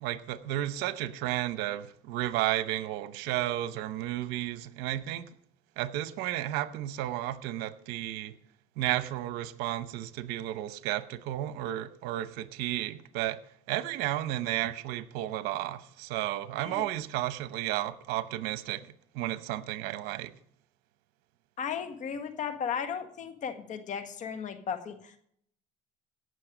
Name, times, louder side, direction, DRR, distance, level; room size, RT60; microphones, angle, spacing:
voice 1, 0.0-5.3 5.8-8.3 8.8-13.4 13.7-20.3, right 14 dB, 75° right, 0.9 m, -33 dB
voice 2, 21.6-25.2, left 7 dB, 50° left, 1.6 m, -35 dB
17.5 x 6.4 x 5.0 m
supercardioid pair, 90°, 16 cm